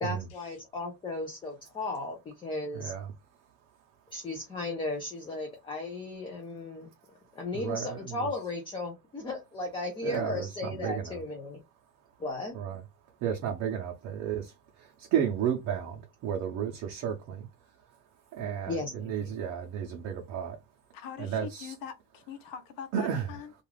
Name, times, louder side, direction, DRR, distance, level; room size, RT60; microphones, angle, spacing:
voice 1, 0.0-2.9 4.1-6.9 7.3-11.6 12.2-12.6 18.7-19.3, left 2 dB, 15° left, 0.4 m, -35 dB
voice 2, 2.7-3.1 7.5-8.3 10.0-11.2 12.5-12.8 13.2-14.4 15.1-15.9 16.2-17.4 18.3-20.6 21.2-21.7 22.9-23.3, right 8 dB, 50° right, 0.6 m, -32 dB
voice 3, 20.9-23.5, left 8 dB, 85° left, 0.8 m, -43 dB
2.4 x 2.3 x 3.1 m
cardioid pair, 180°, 35 cm